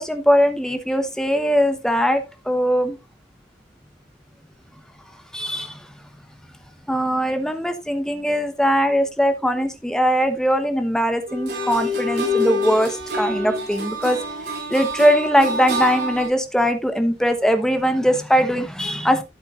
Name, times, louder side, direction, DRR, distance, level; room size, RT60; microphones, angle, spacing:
voice 1, 0.0-3.0 5.3-5.9 6.9-14.2 14.7-19.2, equal, 5° left, 1.0 m, -20 dB
sound 1, 11.3-16.3, left 1 dB, 80° right, 5.4 m, -26 dB
12.5 x 7.8 x 2.5 m
head